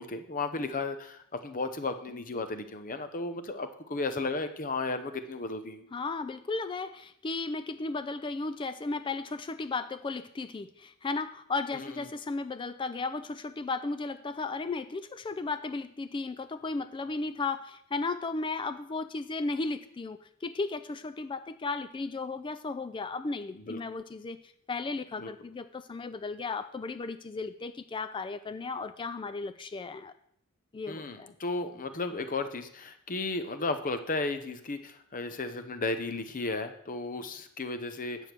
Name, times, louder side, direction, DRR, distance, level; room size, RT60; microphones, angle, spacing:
voice 1, 0.0-5.8 11.7-12.0 23.5-23.8 25.2-25.3 30.9-38.2, left 3 dB, 40° left, 9 dB, 0.7 m, -34 dB
voice 2, 5.9-24.4 24.7-30.1 30.7-31.3, left 3 dB, 20° left, 11 dB, 0.3 m, -35 dB
9.1 x 4.5 x 6.7 m, 0.69 s
head